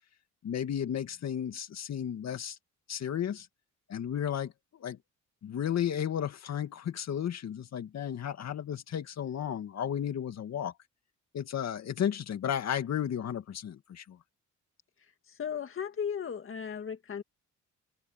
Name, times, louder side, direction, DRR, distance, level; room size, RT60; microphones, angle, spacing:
voice 1, 0.4-2.6 2.9-3.5 3.9-5.0 5.4-10.7 11.3-14.2, left 9 dB, 60° left, 2.1 m, -33 dB
voice 2, 15.3-17.2, left 7 dB, 45° left, 2.1 m, -36 dB
cardioid pair, 90°, 30 cm